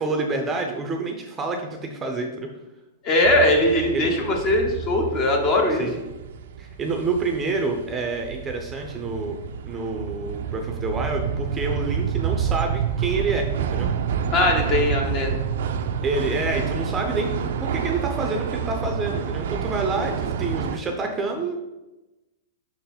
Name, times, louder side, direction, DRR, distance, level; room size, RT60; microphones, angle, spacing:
voice 1, 0.0-2.5 3.9-4.1 5.8-6.0 6.6-9.4 9.6-13.9 16.0-21.6, right 3 dB, 15° right, 3 dB, 0.6 m, -28 dB
voice 2, 3.0-5.9 14.3-15.4, left 1 dB, 35° left, 3 dB, 1.2 m, -20 dB
sound 1, 3.2-20.8, right 7 dB, 70° right, 0.5 m, -28 dB
6.0 x 3.9 x 4.3 m, 1.0 s
hypercardioid pair, 145°, 0 cm